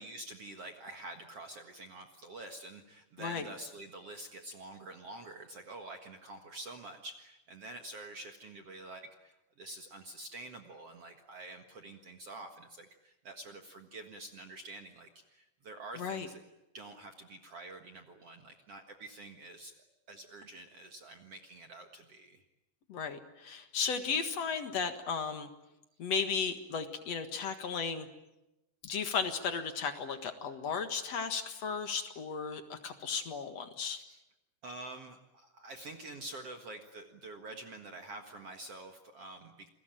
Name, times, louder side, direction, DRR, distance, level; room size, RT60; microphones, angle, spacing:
voice 1, 0.0-16.4 16.7-22.4 33.9-34.2 34.6-39.7, right 2 dB, 50° right, 5 dB, 2.1 m, -47 dB
voice 2, 16.0-16.3 22.9-25.5 26.0-28.1 28.8-34.0, left 6 dB, 50° left, 8 dB, 2.3 m, -35 dB
29.0 x 21.5 x 9.2 m, 0.93 s
omnidirectional pair, 4.6 m